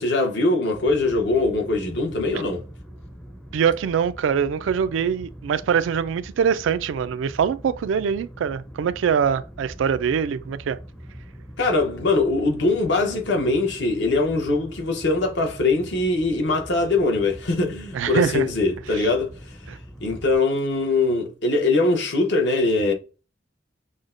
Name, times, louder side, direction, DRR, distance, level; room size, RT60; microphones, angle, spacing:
voice 1, 0.0-2.6 11.6-19.3 20.0-22.9, left 3 dB, 65° left, 0.9 m, -22 dB
sound 1, 0.7-20.4, equal, 5° left, 0.5 m, -42 dB
voice 2, 3.5-10.8 17.9-18.5 18.9-19.1 19.7-19.8, right 7 dB, 85° right, 0.3 m, -23 dB
6.3 x 2.1 x 2.5 m
head